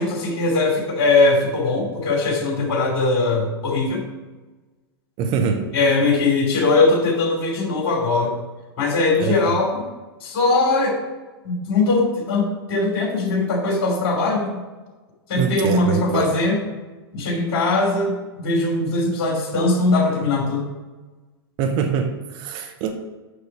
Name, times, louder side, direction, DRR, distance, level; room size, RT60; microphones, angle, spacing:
voice 1, 0.0-4.0 5.7-8.3 8.8-9.8 10.2-11.0 11.4-14.5 15.3-16.6 17.1-20.7, left 3 dB, 40° left, -1 dB, 2.9 m, -20 dB
voice 2, 5.2-5.7 9.2-9.6 15.4-16.4 21.6-22.9, right 6 dB, 40° right, 5 dB, 0.8 m, -24 dB
6.6 x 6.5 x 4.9 m, 1.2 s
figure-of-eight pair, 95°, 13 cm